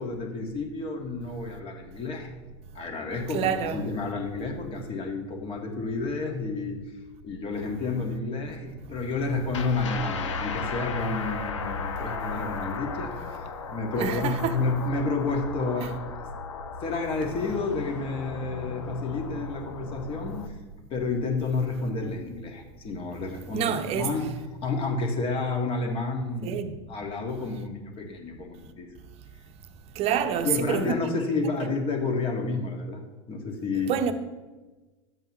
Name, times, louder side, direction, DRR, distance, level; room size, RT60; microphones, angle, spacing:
voice 1, 0.0-2.3 2.7-6.8 7.2-16.0 16.8-20.5 20.9-24.3 24.6-26.6 26.9-28.9 30.4-34.0, left 3 dB, 35° left, 1.7 m, -30 dB
voice 2, 3.3-3.9 13.9-14.6 15.8-15.9 23.5-24.1 26.4-26.7 30.0-30.9 33.9-34.1, right 8 dB, 40° right, 0.8 m, -27 dB
sound 1, 9.5-20.5, left 4 dB, 80° left, 0.8 m, -35 dB
11.0 x 7.7 x 3.0 m
hypercardioid pair, 90°, 15 cm